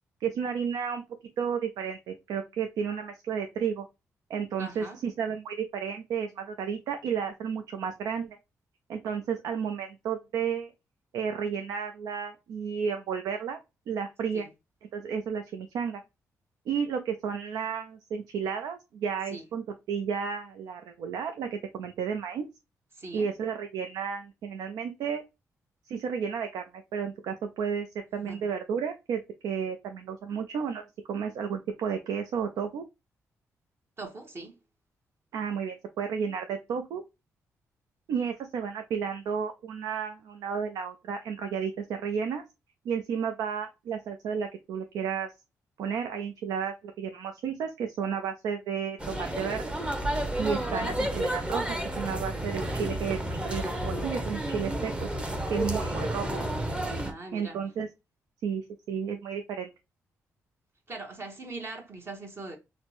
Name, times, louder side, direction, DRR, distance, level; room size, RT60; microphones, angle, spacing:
voice 1, 0.2-1.0 1.4-3.9 4.3-8.4 8.9-10.7 11.1-13.6 13.9-14.5 14.9-16.0 16.7-22.5 23.1-25.2 25.9-27.9 28.1-32.8 35.3-37.0 38.1-42.4 42.9-45.3 45.8-49.7 50.4-55.1 55.5-56.3 57.3-57.9 58.4-59.7, right 7 dB, 85° right, 0.4 m, -32 dB
voice 2, 4.6-5.0 14.3-14.5 19.2-19.4 22.9-23.3 28.2-28.5 34.0-34.6 50.6-50.9 57.0-57.6 60.9-62.6, right 3 dB, 40° right, 1.1 m, -41 dB
sound 1, 49.0-57.1, right 1 dB, 15° right, 0.8 m, -31 dB
4.1 x 2.1 x 2.9 m
cardioid pair, 70°, 6 cm